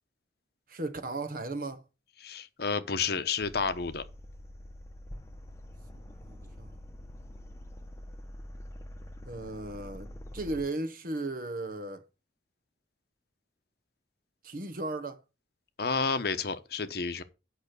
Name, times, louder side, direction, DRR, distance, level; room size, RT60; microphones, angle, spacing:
voice 1, 0.7-1.8 6.2-6.7 9.3-12.1 14.4-15.2, right 2 dB, 50° right, 1.1 m, -36 dB
voice 2, 2.2-4.0 15.8-17.2, left 5 dB, 60° left, 0.9 m, -30 dB
sound 1, 3.4-10.7, left 1 dB, 15° left, 1.0 m, -46 dB
8.4 x 5.9 x 6.7 m
head